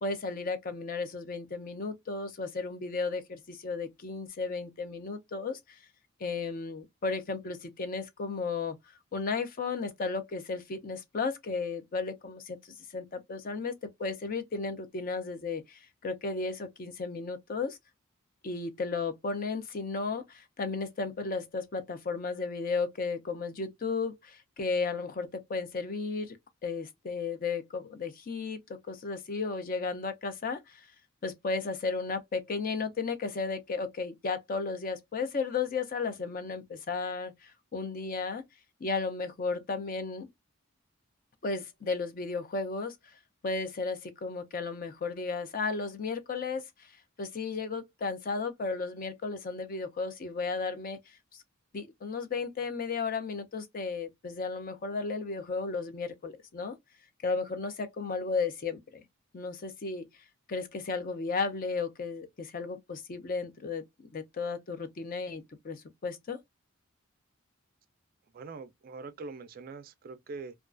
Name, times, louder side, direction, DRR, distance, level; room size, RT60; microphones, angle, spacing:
voice 1, 0.0-5.8 6.2-8.8 9.1-12.6 12.9-13.7 14.0-17.8 18.4-26.4 26.6-30.8 31.2-38.4 38.8-40.3 41.4-42.9 43.4-46.9 47.2-51.4 51.7-56.8 57.2-59.0 59.3-60.1 60.5-63.8 64.1-66.4, left 4 dB, 40° left, 0.4 m, -34 dB
voice 2, 68.3-70.5, right 4 dB, 45° right, 0.3 m, -43 dB
2.3 x 2.2 x 2.4 m
head